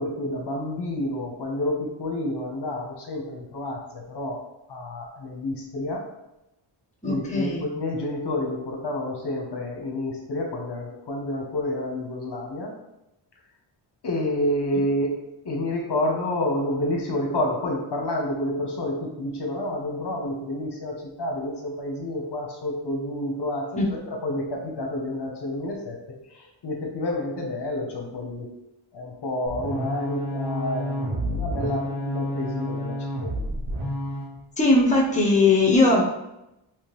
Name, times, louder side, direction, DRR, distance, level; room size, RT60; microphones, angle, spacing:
voice 1, 0.0-4.4 4.7-6.0 7.1-12.7 14.0-15.2 15.4-26.0 26.3-28.5 28.9-33.5 35.9-36.0, left 1 dB, 55° left, 0 dB, 0.9 m, -29 dB
voice 2, 7.0-7.6 23.8-23.9 34.6-36.0, left 2 dB, 15° left, -1 dB, 0.9 m, -19 dB
sound 1, 29.5-34.3, equal, 70° right, 1.5 m, -29 dB
3.6 x 2.9 x 3.0 m, 0.89 s
cardioid pair, 60°, 49 cm